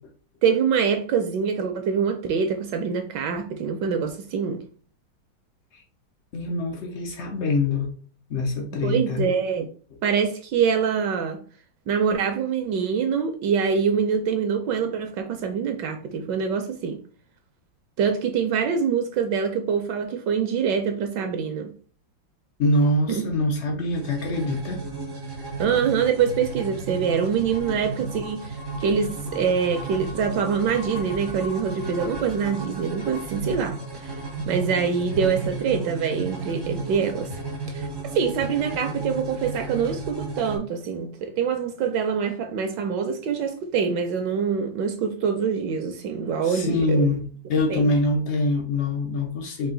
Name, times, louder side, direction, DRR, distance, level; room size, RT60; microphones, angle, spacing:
voice 1, 0.4-4.6 8.8-9.7 10.0-11.4 11.9-17.0 18.0-21.7 23.1-23.3 25.6-33.8 34.0-34.1 34.5-37.3 37.7-37.9 38.1-47.1 47.7-47.9, right 6 dB, 75° right, 1.1 m, -25 dB
voice 2, 6.3-7.9 8.3-9.3 22.6-24.8 46.4-49.7, left 2 dB, 85° left, 0.6 m, -24 dB
sound 1, 23.9-40.6, right 3 dB, 25° right, 0.5 m, -33 dB
4.8 x 2.5 x 3.7 m
omnidirectional pair, 2.2 m